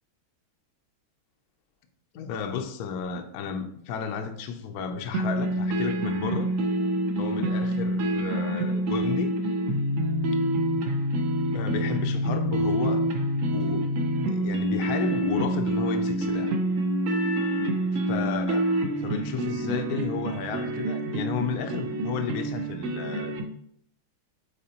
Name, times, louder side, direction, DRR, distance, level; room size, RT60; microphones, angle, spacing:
voice 1, 2.1-6.5 7.2-9.3 11.5-13.1 13.5-13.9 14.3-16.6 17.9-18.6 19.0-23.3, left 6 dB, 70° left, 5 dB, 0.9 m, -33 dB
sound 1, 5.1-23.4, right 1 dB, 75° right, 0.7 m, -27 dB
8.6 x 4.2 x 2.9 m, 0.69 s
omnidirectional pair, 2.2 m